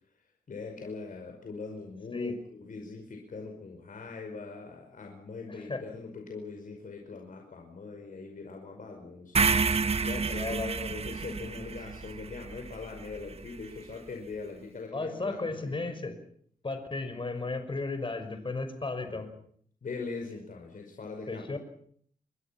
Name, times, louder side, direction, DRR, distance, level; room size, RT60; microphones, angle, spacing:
voice 1, 0.5-10.6 10.9-15.8 19.0-19.3 19.8-21.6, left 4 dB, 65° left, 2 dB, 5.5 m, -41 dB
voice 2, 5.5-5.8 10.4-10.9 14.9-16.2 16.6-19.3 21.3-21.6, left 3 dB, 35° left, 8 dB, 5.6 m, -34 dB
sound 1, 9.3-13.5, right 5 dB, 45° right, 1.1 m, -29 dB
28.0 x 22.5 x 6.0 m, 0.62 s
cardioid pair, 85°, 15 cm